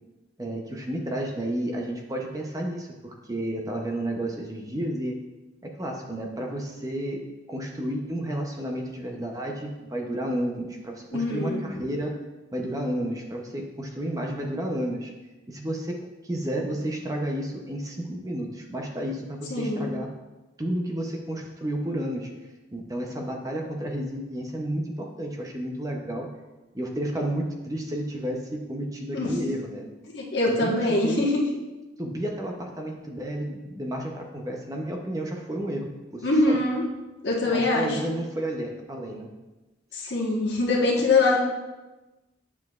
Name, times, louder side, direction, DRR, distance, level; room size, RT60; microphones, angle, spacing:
voice 1, 0.4-5.2 5.6-12.2 12.5-15.1 15.5-16.0 16.2-20.1 20.6-22.3 22.7-26.3 26.7-29.9 30.5-31.2 32.0-36.6 37.4-39.3 40.0-40.1, right 1 dB, 20° right, 1 dB, 0.6 m, -31 dB
voice 2, 11.1-11.6 19.5-19.9 29.1-29.3 30.1-31.4 36.2-36.8 37.2-38.0 39.9-41.4, left 2 dB, 65° left, -2 dB, 1.3 m, -23 dB
8.3 x 6.8 x 2.4 m, 1.1 s
head